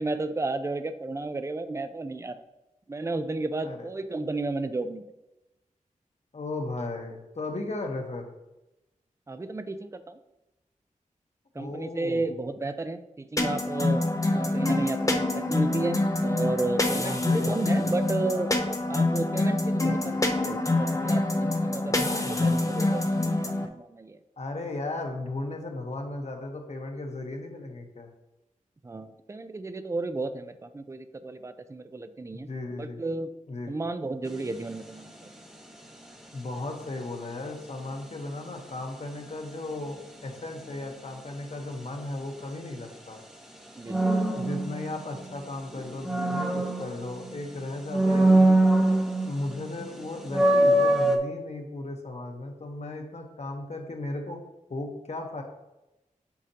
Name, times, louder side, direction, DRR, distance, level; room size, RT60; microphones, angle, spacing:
voice 1, 0.0-2.4 2.9-5.0 9.3-10.2 11.6-14.0 14.3-18.5 18.9-24.2 28.8-33.3 33.7-35.3 43.8-44.1, right 2 dB, 20° right, 10 dB, 0.4 m, -33 dB
voice 2, 6.3-8.2 11.5-12.3 17.0-17.9 21.9-22.6 24.4-28.1 32.3-33.0 33.5-33.7 36.3-43.2 44.3-48.6 49.2-54.4 54.7-55.4, left 2 dB, 55° left, 2 dB, 1.2 m, -36 dB
sound 1, 13.4-23.7, left 2 dB, 25° left, 0.7 m, -26 dB
sound 2, 34.3-34.6 43.9-45.3 45.8-47.4 47.9-49.5 49.8-49.9 50.3-51.2, right 1 dB, 5° right, 1.0 m, -22 dB
8.3 x 5.0 x 2.9 m, 0.98 s
wide cardioid pair, 80°, 14 cm